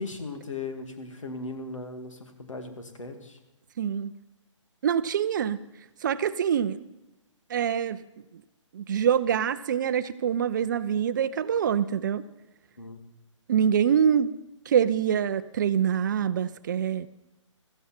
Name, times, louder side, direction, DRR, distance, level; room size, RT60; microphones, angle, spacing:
voice 1, 0.0-3.4 12.8-13.0, left 3 dB, 75° left, 6 dB, 2.3 m, -37 dB
voice 2, 3.8-4.1 4.8-5.6 6.0-6.8 7.5-8.0 8.7-12.2 13.5-14.3 14.7-17.1, right 8 dB, 40° right, 14 dB, 0.6 m, -25 dB
15.5 x 14.0 x 4.4 m, 0.97 s
figure-of-eight pair, 140°, 16 cm